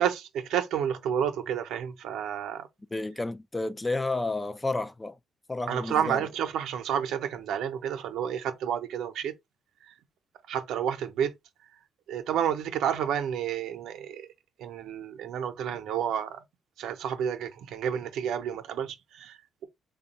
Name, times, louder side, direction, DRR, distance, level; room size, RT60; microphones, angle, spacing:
voice 1, 0.0-2.7 5.7-9.3 9.8-9.9 10.5-11.3 12.1-14.3 14.6-16.4 16.8-19.7, right 9 dB, 80° right, 0.6 m, -30 dB
voice 2, 2.9-5.2 5.5-6.3, left 2 dB, 15° left, 0.3 m, -31 dB
3.5 x 2.2 x 4.0 m
cardioid pair, 90°, 0 cm